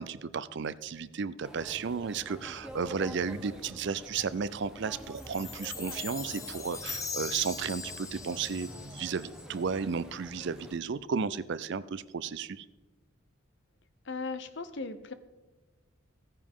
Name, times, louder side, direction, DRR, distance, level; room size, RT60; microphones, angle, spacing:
voice 1, 0.0-12.6, right 5 dB, 55° right, 16 dB, 0.5 m, -34 dB
sound 1, 1.4-10.8, equal, 5° right, 1.0 m, -47 dB
Chime, 5.2-9.6, left 5 dB, 15° left, 0.6 m, -41 dB
voice 2, 14.0-15.1, left 4 dB, 55° left, 11 dB, 0.8 m, -37 dB
15.5 x 9.8 x 3.7 m, 1.2 s
head